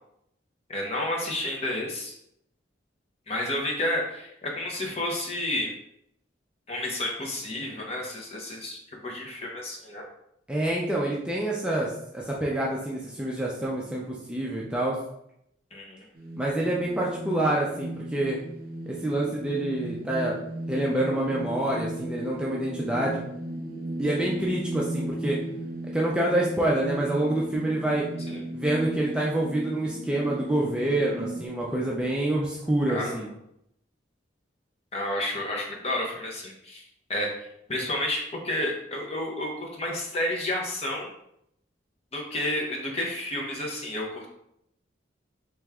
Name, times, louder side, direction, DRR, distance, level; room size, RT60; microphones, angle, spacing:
voice 1, 0.7-2.1 3.3-5.7 6.7-10.0 15.7-16.0 28.3-28.4 32.9-33.2 34.9-36.8 37.1-41.1 42.1-44.3, left 1 dB, 35° left, -1 dB, 0.7 m, -31 dB
voice 2, 10.5-15.0 16.4-18.4 18.9-20.4 20.7-23.2 24.0-25.4 25.9-28.1 28.5-33.3, right 1 dB, 5° right, -4 dB, 0.4 m, -27 dB
Shadow Maker - Library, 16.2-31.5, right 1 dB, 50° right, 0.8 m, -36 dB
3.3 x 3.0 x 3.5 m, 0.76 s
head